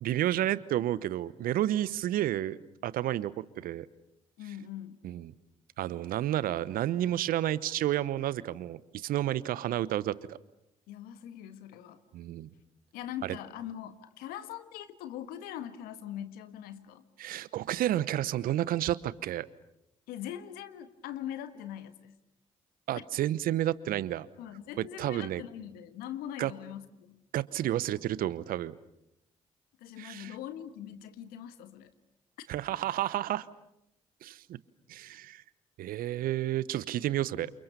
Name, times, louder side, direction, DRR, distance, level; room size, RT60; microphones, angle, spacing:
voice 1, 0.0-3.9 5.0-5.3 5.8-10.4 12.1-12.5 13.2-13.4 17.2-19.5 22.9-24.3 24.8-25.4 26.4-26.5 27.3-28.8 30.0-30.3 32.5-33.5 34.2-34.6 34.9-35.4 35.8-37.5, right 13 dB, 65° right, 19 dB, 1.0 m, -31 dB
voice 2, 4.4-5.1 10.9-12.0 12.9-17.0 20.1-22.2 23.0-23.1 24.4-27.2 29.8-31.9 32.4-32.5, left 10 dB, 75° left, 11 dB, 1.6 m, -42 dB
30.0 x 28.5 x 6.9 m, 0.82 s
hypercardioid pair, 40°, 16 cm